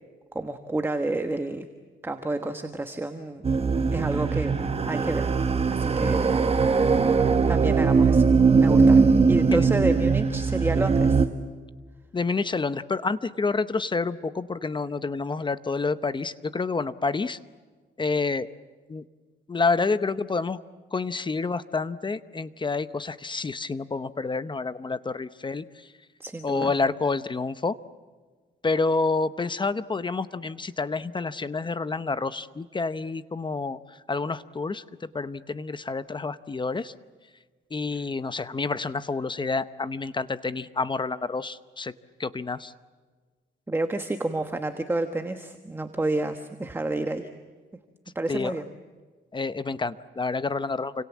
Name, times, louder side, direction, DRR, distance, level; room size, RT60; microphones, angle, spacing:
voice 1, 0.3-1.7 2.0-3.4 3.9-4.6 4.9-5.2 5.7-6.3 7.1-8.3 8.6-11.3 26.2-26.7 37.9-38.0 43.7-47.3 48.1-48.7, right 2 dB, 10° right, 7 dB, 1.3 m, -29 dB
sound 1, 3.4-11.3, right 5 dB, 30° right, 1.5 m, -20 dB
voice 2, 12.1-17.4 18.0-18.5 18.9-19.0 19.5-20.6 20.9-25.6 26.4-27.8 28.6-33.8 34.1-36.9 37.7-41.9 42.2-42.7 48.3-48.5 49.3-51.0, left 4 dB, 25° left, 14 dB, 0.8 m, -28 dB
29.0 x 26.0 x 7.3 m, 1.4 s
cardioid pair, 130°, 19 cm